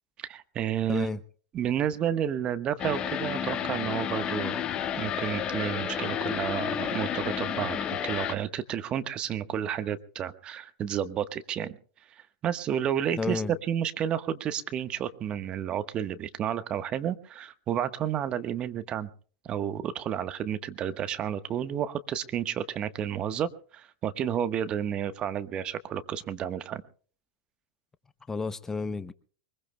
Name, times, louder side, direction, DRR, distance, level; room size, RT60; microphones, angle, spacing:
voice 1, 0.2-1.1 1.5-4.6 5.0-11.8 12.4-19.1 19.4-26.8, right 9 dB, 35° right, 1.2 m, -31 dB
voice 2, 0.9-1.2 13.2-13.5 28.3-29.1, left 4 dB, 15° left, 0.7 m, -31 dB
sound 1, 2.8-8.3, left 9 dB, 35° left, 1.6 m, -31 dB
23.5 x 21.5 x 2.2 m
hypercardioid pair, 100°, 3 cm